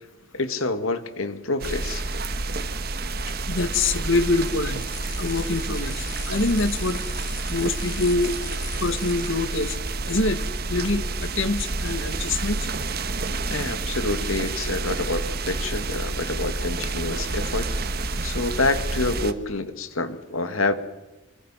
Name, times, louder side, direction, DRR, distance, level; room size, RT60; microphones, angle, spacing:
voice 1, 0.3-2.0 13.5-17.7 18.2-20.7, left 3 dB, 90° left, 9 dB, 2.2 m, -27 dB
sound 1, 1.6-19.3, right 3 dB, 50° right, 1.5 m, -29 dB
voice 2, 3.5-4.9 5.2-7.0 7.5-8.3 8.8-9.8 10.1-10.4 10.7-12.6, left 3 dB, 70° left, 10 dB, 1.9 m, -25 dB
sound 2, 4.1-9.5, left 5 dB, 40° left, 5.2 m, -41 dB
28.0 x 24.5 x 5.9 m, 1.1 s
head